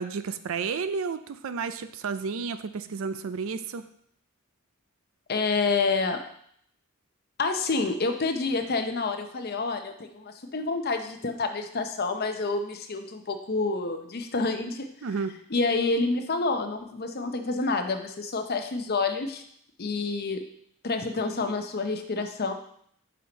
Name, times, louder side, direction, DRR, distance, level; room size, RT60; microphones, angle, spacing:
voice 1, 0.0-3.9 15.0-15.4, right 5 dB, 65° right, 12 dB, 0.4 m, -32 dB
voice 2, 5.3-6.2 7.4-14.9 15.5-19.4 19.8-20.4 20.8-22.5, left 3 dB, 45° left, 6 dB, 0.7 m, -28 dB
5.5 x 4.4 x 5.1 m, 0.66 s
head